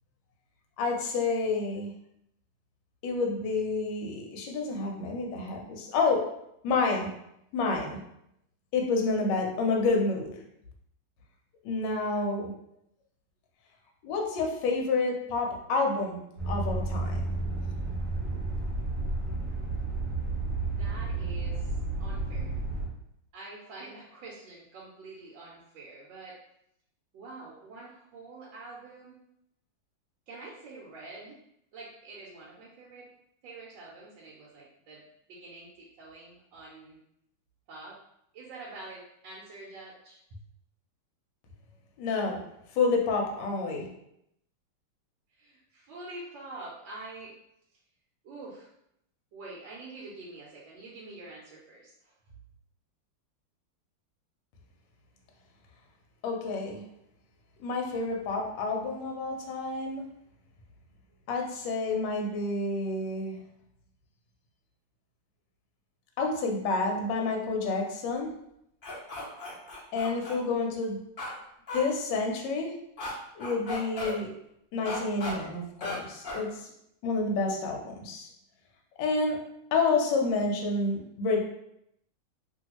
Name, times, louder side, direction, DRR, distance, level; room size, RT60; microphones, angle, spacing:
voice 1, 0.8-1.9 3.0-6.2 6.6-7.1 7.5-8.0 8.7-10.4 11.6-12.5 14.0-17.3 42.0-42.4 42.7-43.9 56.2-56.8 57.6-60.1 61.3-63.4 66.2-68.3 69.9-71.0 71.7-72.7 73.4-74.3 74.7-76.7 77.0-78.3 79.0-79.4 79.7-81.4, left 3 dB, 70° left, 1 dB, 1.2 m, -29 dB
sound 1, 16.4-22.9, right 2 dB, 50° right, 0.8 m, -31 dB
voice 2, 20.7-21.7 22.0-22.5 23.3-26.4 27.1-29.2 30.3-31.4 31.7-33.1 33.4-35.0 35.3-37.0 37.7-38.0 38.3-40.2 45.3-47.4 48.2-48.7 49.3-52.1, right 2 dB, 70° right, -5 dB, 1.3 m, -46 dB
sound 2, 68.8-70.4 71.2-71.3 71.7-71.8 73.0-73.1 73.4-74.1 74.8-75.3 75.8-76.0 76.2-76.4, left 2 dB, 85° left, 0.4 m, -36 dB
3.0 x 2.7 x 2.9 m, 0.77 s
omnidirectional pair, 2.3 m